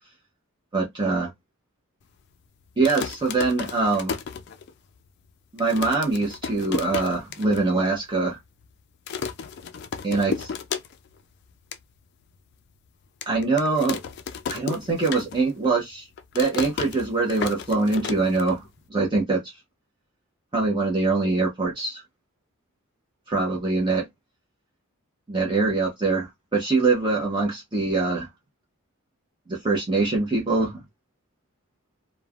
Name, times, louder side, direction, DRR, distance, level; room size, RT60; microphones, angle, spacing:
voice 1, 0.7-1.3 2.8-4.1 5.5-8.4 10.0-10.3 13.3-14.0 14.5-16.1 16.3-18.6 18.9-19.5 20.5-22.0 23.3-24.1 25.3-26.3 26.5-28.2 29.5-30.8, right 3 dB, 20° right, 0.7 m, -23 dB
sound 1, 2.7-5.0 5.3-5.4 5.6-7.6 8.0-8.1 8.3-8.7 9.1-11.2 11.5-11.8 12.3-12.4 13.2-15.7 15.9-18.9, left 6 dB, 50° left, 0.3 m, -33 dB
3.1 x 2.1 x 2.3 m
head